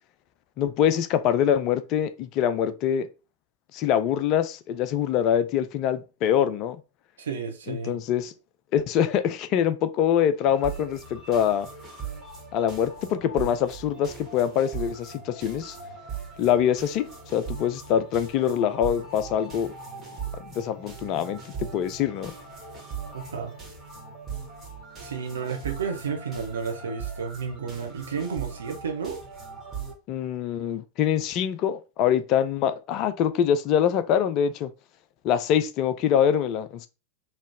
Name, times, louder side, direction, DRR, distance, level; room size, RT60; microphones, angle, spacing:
voice 1, 0.6-3.1 3.7-6.8 7.7-8.3 8.7-11.7 12.5-15.8 16.4-19.7 20.5-22.3 30.1-34.7 35.2-36.9, left 9 dB, 40° left, 0.5 m, -24 dB
voice 2, 7.2-8.0 23.1-23.5 25.0-29.2, right 6 dB, 65° right, 1.0 m, -32 dB
sound 1, 10.5-29.9, right 6 dB, 20° right, 2.1 m, -39 dB
4.3 x 3.1 x 3.5 m
figure-of-eight pair, 90°, 0 cm